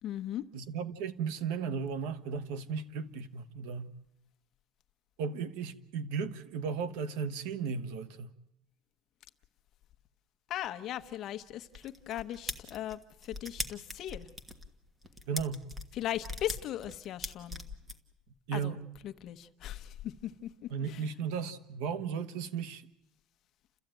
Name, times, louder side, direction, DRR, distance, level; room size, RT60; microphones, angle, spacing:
voice 1, 0.0-0.4 10.5-14.3 15.9-17.6 18.5-18.8 19.0-21.0, left 12 dB, 40° left, 1.0 m, -38 dB
voice 2, 0.5-3.9 5.2-8.3 15.3-15.6 18.5-18.8 20.7-22.8, right 6 dB, 90° right, 1.4 m, -35 dB
sound 1, 11.7-18.0, equal, 10° right, 1.4 m, -40 dB
29.5 x 14.0 x 9.1 m
cardioid pair, 165°, 0 cm